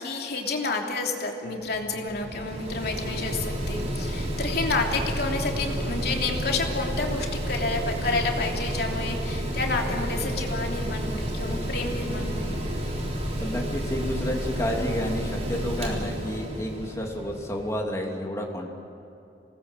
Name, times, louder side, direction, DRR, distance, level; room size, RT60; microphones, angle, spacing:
voice 1, 0.0-12.6, left 3 dB, 65° left, 1 dB, 3.1 m, -30 dB
Mechanical fan, 1.4-17.7, equal, 40° right, 4.2 m, -31 dB
voice 2, 13.4-18.7, left 1 dB, 15° left, 0 dB, 3.1 m, -30 dB
26.0 x 19.5 x 7.8 m, 2.8 s
head